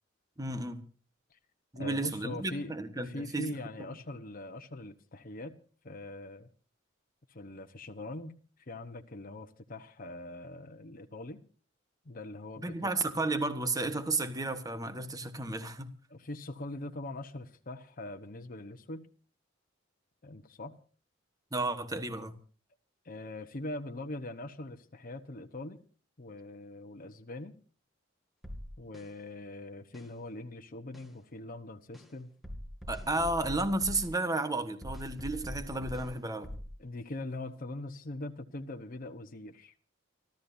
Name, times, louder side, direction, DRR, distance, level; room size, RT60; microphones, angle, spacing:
voice 1, 0.4-0.8 1.7-3.5 12.6-15.9 21.5-22.3 32.9-36.5, right 2 dB, 20° right, 9 dB, 1.4 m, -33 dB
voice 2, 1.7-5.6 5.8-6.5 7.3-11.4 12.0-12.9 16.1-19.1 20.2-20.8 23.0-25.8 26.2-27.6 28.8-32.3 36.8-39.7, left 2 dB, 45° left, 6 dB, 1.1 m, -42 dB
sound 1, 28.4-29.1 29.9-30.1 30.9-31.1 31.9-32.1 32.4-34.1 34.8-36.1 36.4-36.7, equal, ahead, 2.3 m, -42 dB
29.5 x 13.0 x 2.7 m, 0.40 s
head